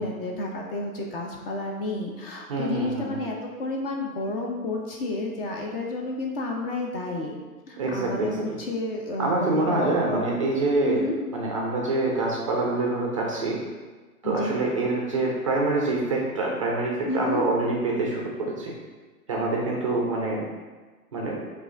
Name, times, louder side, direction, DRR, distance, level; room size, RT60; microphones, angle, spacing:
voice 1, 0.0-7.4 7.7-10.2 10.8-11.1 14.2-14.5 17.1-17.5, left 2 dB, 40° left, 0 dB, 0.6 m, -31 dB
voice 2, 2.5-3.2 7.7-8.6 9.2-11.0 11.3-13.6 14.2-18.3 18.6-18.7 19.3-20.4 21.1-21.4, right 2 dB, 25° right, -2 dB, 0.3 m, -26 dB
4.7 x 2.5 x 3.8 m, 1.3 s
hypercardioid pair, 120°, 46 cm